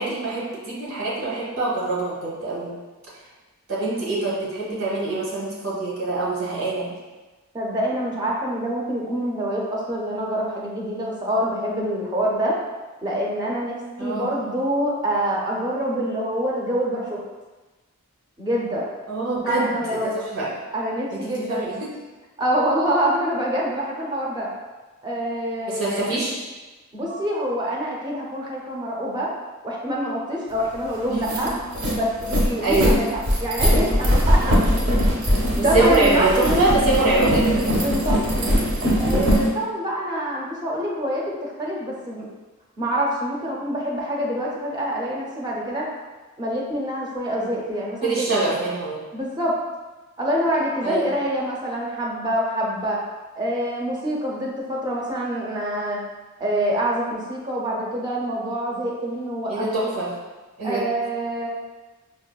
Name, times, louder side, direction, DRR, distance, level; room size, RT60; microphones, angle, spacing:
voice 1, 0.0-2.7 3.7-6.9 14.0-14.3 19.1-20.5 21.1-21.9 25.7-26.4 27.1-27.2 31.1-31.5 32.6-33.0 35.6-37.7 48.0-49.0 50.8-51.1 59.5-60.1 60.6-60.8, right 2 dB, 90° right, -6 dB, 1.2 m, -24 dB
voice 2, 7.5-12.6 13.0-17.2 18.4-18.9 19.4-20.2 20.7-21.7 22.4-24.5 25.0-25.9 26.9-29.3 29.6-31.5 31.9-34.5 35.5-36.7 37.8-38.6 38.9-42.2 42.8-45.9 46.4-48.3 49.1-49.6 50.2-53.0 53.4-56.0 56.4-59.9 60.6-61.5, equal, 20° right, -3 dB, 0.5 m, -26 dB
sound 1, 30.6-30.7 31.0-39.5, equal, 55° right, 0.7 m, -21 dB
5.3 x 2.1 x 2.3 m, 1.2 s
head